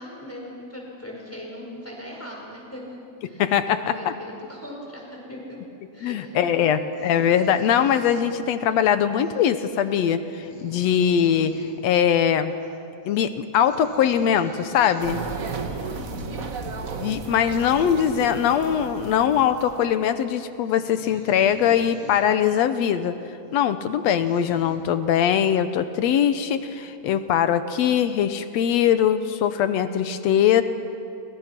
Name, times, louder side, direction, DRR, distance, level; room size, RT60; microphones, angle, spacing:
voice 1, 0.0-3.0 3.2-5.6 5.9-6.7 15.6-16.4, left 1 dB, 5° left, -2 dB, 5.1 m, -39 dB
voice 2, 3.4-3.9 6.0-11.6 11.8-12.5 13.1-15.2 17.0-23.2 23.5-30.6, left 9 dB, 70° left, 11 dB, 1.8 m, -21 dB
sound 1, 6.9-8.8 9.2-9.4 9.9-10.0 10.2-11.8 12.1-12.2 12.5-12.8 13.0-13.3 13.6-15.1 15.9-16.1 16.5-16.7 17.2-19.0 19.5-19.7 20.3-20.4 20.6-22.3 22.8-23.0 23.7-23.8 24.1-24.8, left 3 dB, 50° left, 3.8 m, -46 dB
sound 2, 15.0-20.0, right 4 dB, 55° right, 0.9 m, -34 dB
28.5 x 24.5 x 6.0 m, 2.7 s
omnidirectional pair, 3.6 m